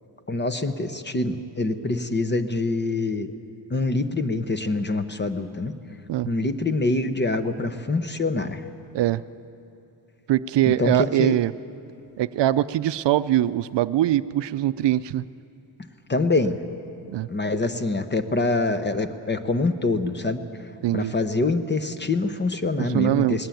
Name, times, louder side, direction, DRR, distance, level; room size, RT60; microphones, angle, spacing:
voice 1, 0.3-3.3 3.7-5.7 6.3-8.6 10.7-11.4 16.1-16.6 17.3-20.4 20.9-23.5, left 2 dB, 25° left, 10 dB, 0.9 m, -25 dB
voice 2, 10.3-11.5 12.2-15.2 17.1-17.3 20.8-21.1 22.8-23.4, right 13 dB, 75° right, 15 dB, 0.5 m, -22 dB
20.0 x 18.5 x 9.2 m, 2.8 s
wide cardioid pair, 135°, 43 cm